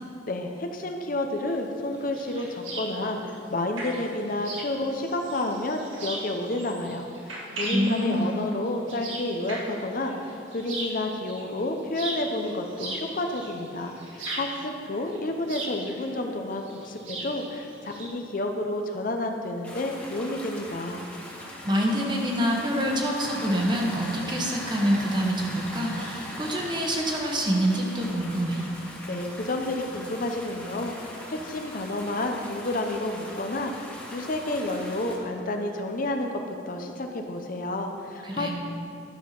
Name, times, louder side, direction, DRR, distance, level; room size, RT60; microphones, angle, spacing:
voice 1, 0.3-21.0 29.1-38.5, left 1 dB, 45° left, 4 dB, 0.7 m, -30 dB
sound 1, 1.5-18.1, right 2 dB, 85° right, 1.8 m, -38 dB
voice 2, 7.7-8.3 21.6-28.6 38.2-38.5, equal, 25° right, -1 dB, 1.2 m, -26 dB
sound 2, 19.6-35.2, left 1 dB, 10° left, 1.4 m, -40 dB
12.0 x 5.6 x 5.9 m, 2.6 s
head